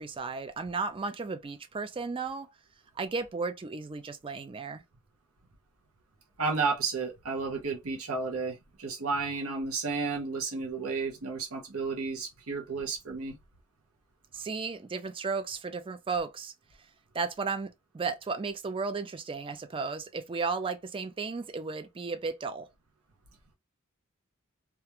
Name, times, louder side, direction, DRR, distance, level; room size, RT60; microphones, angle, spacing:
voice 1, 0.0-2.5 3.0-4.8 14.3-16.5 17.1-22.7, right 4 dB, 25° right, 0.4 m, -34 dB
voice 2, 6.4-13.4, right 4 dB, 90° right, 0.7 m, -32 dB
2.4 x 2.2 x 2.8 m
head